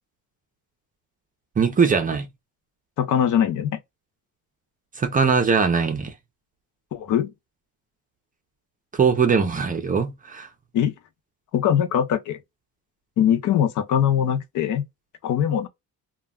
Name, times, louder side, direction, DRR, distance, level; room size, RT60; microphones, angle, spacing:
voice 1, 1.6-2.3 5.0-6.1 8.9-10.5, right 5 dB, 25° right, 0.5 m, -21 dB
voice 2, 3.0-3.8 6.9-7.3 10.7-10.9 11.5-12.4 13.2-14.8 15.2-15.7, left 9 dB, 55° left, 0.6 m, -21 dB
2.2 x 2.0 x 3.5 m
cardioid pair, 140°, 36 cm